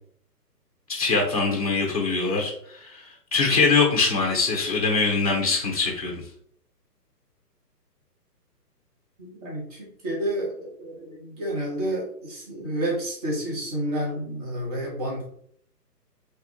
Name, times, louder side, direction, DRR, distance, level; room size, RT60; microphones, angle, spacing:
voice 1, 0.9-2.5 2.8-3.0 3.3-6.2, left 4 dB, 25° left, 0 dB, 0.5 m, -22 dB
voice 2, 9.2-15.3, right 1 dB, 25° right, -3 dB, 0.8 m, -30 dB
3.1 x 2.3 x 2.9 m, 0.62 s
figure-of-eight pair, 140°, 49 cm